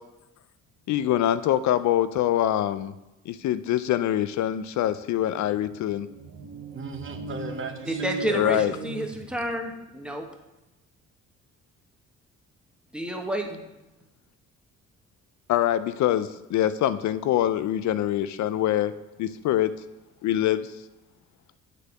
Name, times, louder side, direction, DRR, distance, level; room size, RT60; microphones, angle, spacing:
voice 1, 0.9-2.9 3.3-6.1 8.3-8.7 15.5-18.9 19.2-19.7 20.2-20.7, left 12 dB, 70° left, 13 dB, 0.5 m, -24 dB
sound 1, 4.8-9.8, right 3 dB, 80° right, 1.6 m, -39 dB
voice 2, 6.5-8.6, right 4 dB, 40° right, 6 dB, 1.0 m, -38 dB
voice 3, 7.9-10.3 12.9-13.7, right 1 dB, 5° right, 2 dB, 1.3 m, -30 dB
8.1 x 4.1 x 6.7 m, 0.97 s
cardioid pair, 90°, 30 cm